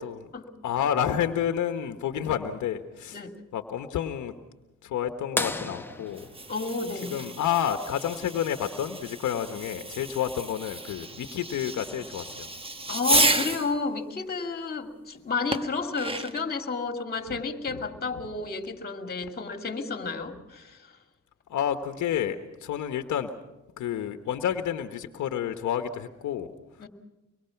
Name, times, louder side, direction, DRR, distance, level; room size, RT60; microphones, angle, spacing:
voice 1, 0.6-3.2 3.5-4.3 4.8-6.3 7.1-12.5 17.3-17.4 21.5-23.3 23.8-26.5, left 9 dB, 70° left, 7 dB, 1.3 m, -29 dB
sound 1, 5.4-7.8 9.7-9.8 12.1-12.2 13.9-14.1 14.9-15.0, left 2 dB, 5° left, 1.1 m, -34 dB
Fireworks, 6.1-13.7 15.5-16.5, right 2 dB, 20° right, 1.2 m, -31 dB
voice 2, 6.5-7.2 12.9-20.9 26.8-26.9, left 4 dB, 30° left, 5 dB, 2.5 m, -31 dB
24.5 x 22.0 x 6.0 m, 1.0 s
cardioid pair, 90°, 30 cm